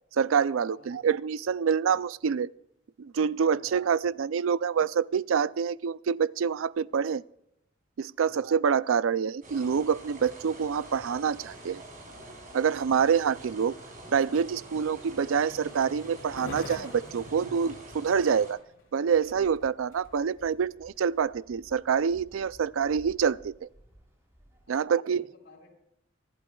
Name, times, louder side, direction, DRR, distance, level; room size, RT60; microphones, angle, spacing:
voice 1, 0.1-2.5 3.0-7.2 8.0-11.8 12.5-13.7 14.1-18.6 18.9-23.7 24.7-25.2, right 6 dB, 85° right, 0.4 m, -26 dB
voice 2, 0.7-1.1 1.9-2.0 3.5-3.9 8.2-8.4 24.7-25.7, left 2 dB, 60° left, 4.3 m, -56 dB
sound 1, 9.4-18.5, right 1 dB, 40° right, 5.8 m, -46 dB
Skateboard, 11.4-20.2 20.8-20.9, left 2 dB, 90° left, 3.5 m, -48 dB
sound 2, 16.6-24.8, equal, 15° right, 3.8 m, -58 dB
25.0 x 11.5 x 2.3 m
head